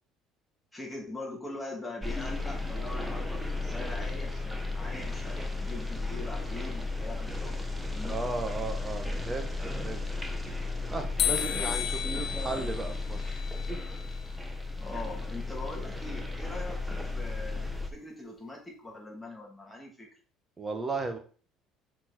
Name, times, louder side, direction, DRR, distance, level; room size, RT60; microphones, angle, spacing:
voice 1, 0.7-8.2 11.5-12.8 14.8-20.1, left 2 dB, 10° left, -1 dB, 2.8 m, -42 dB
sound 1, 2.0-17.9, left 3 dB, 5° right, 1.2 m, -34 dB
voice 2, 8.1-9.5 9.8-10.1 10.9-13.3 20.6-21.2, right 3 dB, 25° right, 6 dB, 1.4 m, -35 dB
sound 2, 11.2-14.3, left 10 dB, 60° left, 0.8 m, -33 dB
6.2 x 4.5 x 4.4 m, 0.43 s
supercardioid pair, 90°, 0 cm